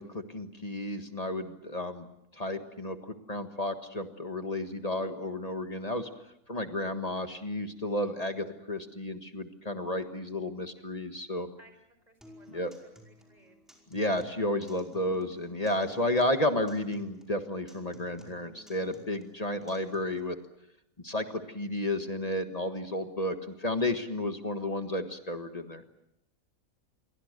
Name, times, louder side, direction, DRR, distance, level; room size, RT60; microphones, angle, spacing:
voice 1, 0.0-2.1 2.4-6.1 6.5-11.5 12.5-12.7 13.9-20.4 21.0-25.8, left 1 dB, 25° left, 7 dB, 1.6 m, -32 dB
voice 2, 12.1-13.6 23.7-23.9, right 1 dB, 30° right, 7 dB, 5.3 m, -60 dB
Acoustic guitar, 12.2-20.2, equal, ahead, 5.0 m, -57 dB
28.5 x 23.0 x 6.7 m, 0.81 s
omnidirectional pair, 1.5 m